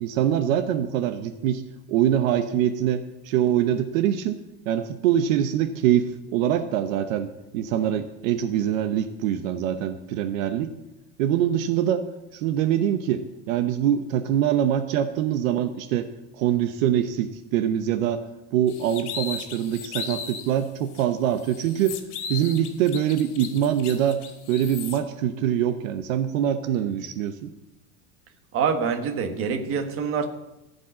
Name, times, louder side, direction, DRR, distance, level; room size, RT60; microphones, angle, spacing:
voice 1, 0.0-1.6 1.9-4.4 4.7-7.3 7.5-10.7 11.2-12.0 12.3-18.2 18.5-22.0 22.3-24.2 24.5-27.5, right 10 dB, 60° right, 8 dB, 0.9 m, -24 dB
sound 1, 18.7-20.5 20.9-21.0 21.4-25.0, left 6 dB, 75° left, 2.1 m, -36 dB
voice 2, 28.5-30.3, right 6 dB, 30° right, 5 dB, 1.3 m, -25 dB
15.5 x 5.4 x 8.4 m, 0.96 s
supercardioid pair, 155°, 44 cm